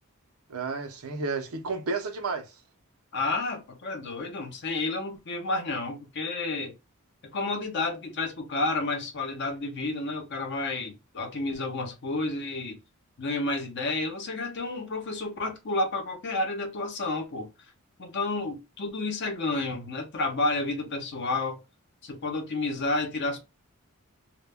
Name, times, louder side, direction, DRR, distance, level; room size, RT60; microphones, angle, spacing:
voice 1, 0.5-2.5, right 4 dB, 80° right, 0.6 m, -32 dB
voice 2, 3.1-6.7 7.3-12.8 13.2-17.5 18.0-21.6 22.0-23.4, left 2 dB, 55° left, 0.7 m, -30 dB
2.2 x 2.1 x 3.3 m
head